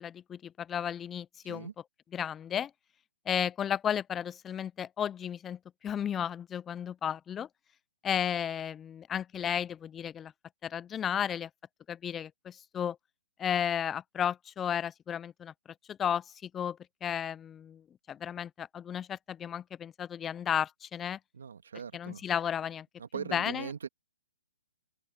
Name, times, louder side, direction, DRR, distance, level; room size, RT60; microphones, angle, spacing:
voice 1, 0.0-1.7 2.1-2.7 3.3-7.5 8.0-10.3 10.6-11.5 11.9-13.0 13.4-15.5 15.9-17.8 18.1-21.2 21.9-22.9 23.1-23.7, left 9 dB, 15° left, 0.4 m, -33 dB
voice 2, 21.3-22.2 23.0-23.9, right 7 dB, 75° right, 1.8 m, -40 dB
hypercardioid pair, 155°, 0 cm